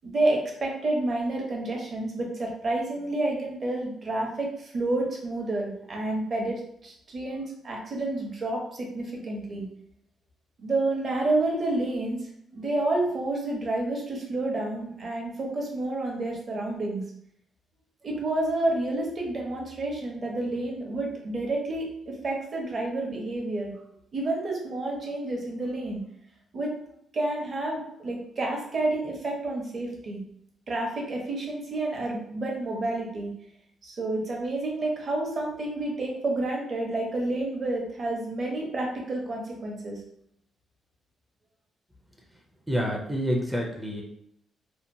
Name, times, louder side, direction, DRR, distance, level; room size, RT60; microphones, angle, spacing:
voice 1, 0.0-9.7 10.6-12.2 12.5-17.0 18.0-23.7 24.1-26.0 26.5-26.7 27.1-30.2 30.7-33.3 33.8-40.0, right 2 dB, 40° right, 0 dB, 0.7 m, -29 dB
voice 2, 42.7-44.0, equal, 5° right, -2 dB, 0.4 m, -28 dB
2.7 x 2.1 x 2.6 m, 0.71 s
cardioid pair, 135°, 0 cm